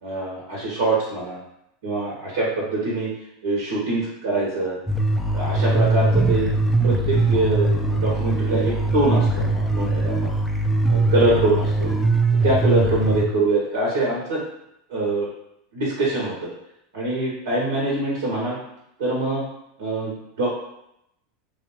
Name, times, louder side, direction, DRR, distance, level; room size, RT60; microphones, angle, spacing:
voice 1, 0.0-1.4 1.8-3.1 3.4-4.8 5.3-6.5 6.8-10.3 10.9-11.9 12.4-14.4 14.9-15.3 15.7-16.5 16.9-18.6 19.0-19.4 19.8-20.6, right 2 dB, 65° right, -4 dB, 0.7 m, -24 dB
sound 1, 4.9-13.3, right 2 dB, 5° left, 0.3 m, -21 dB
2.9 x 2.0 x 2.7 m, 0.81 s
figure-of-eight pair, 85°, 0 cm